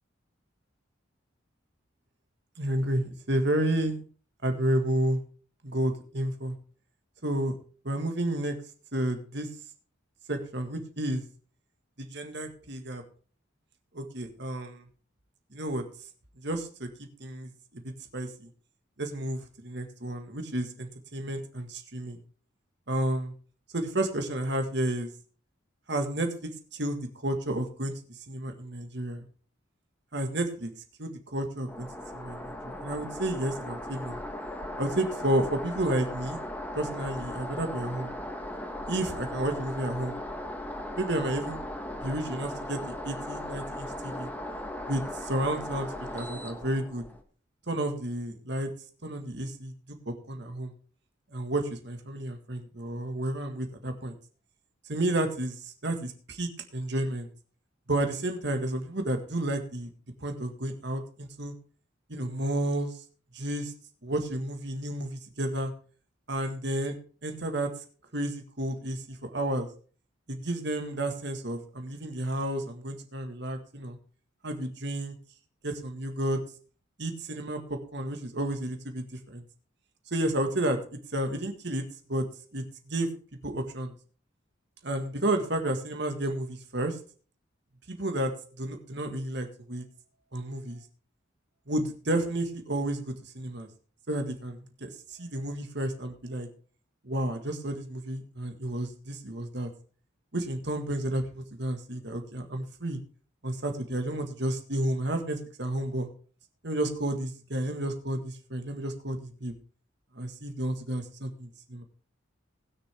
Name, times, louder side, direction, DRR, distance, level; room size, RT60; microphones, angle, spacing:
voice 1, 2.6-4.0 4.4-5.2 5.6-6.6 7.2-7.5 7.8-8.6 8.9-9.5 10.3-11.2 12.0-13.0 13.9-14.8 15.5-15.8 16.4-16.9 17.2-18.5 19.0-22.2 22.9-23.3 23.7-25.1 25.9-27.9 28.3-29.3 30.1-30.7 31.0-31.9 32.1-34.2 34.8-36.4 36.7-38.1 38.9-40.2 41.0-41.6 42.0-44.3 44.9-47.0 47.7-48.7 49.0-50.7 51.3-54.1 54.9-57.3 57.9-59.9 60.2-61.5 62.1-63.0 63.3-63.7 64.0-65.7 66.3-66.9 67.2-67.7 68.1-69.7 70.3-74.0 74.4-75.2 75.6-76.4 77.0-79.4 80.1-81.8 82.1-82.2 82.5-83.1 83.4-83.9 84.8-87.0 87.9-89.8 90.3-90.8 91.7-93.7 94.1-94.9 95.2-96.5 97.0-99.7 100.3-103.0 103.4-106.1 106.6-109.5 110.2-111.8, right 1 dB, 60° right, 5 dB, 1.8 m, -31 dB
sound 1, 31.7-47.2, left 1 dB, 10° left, 1.2 m, -38 dB
19.5 x 6.8 x 3.6 m, 0.40 s
head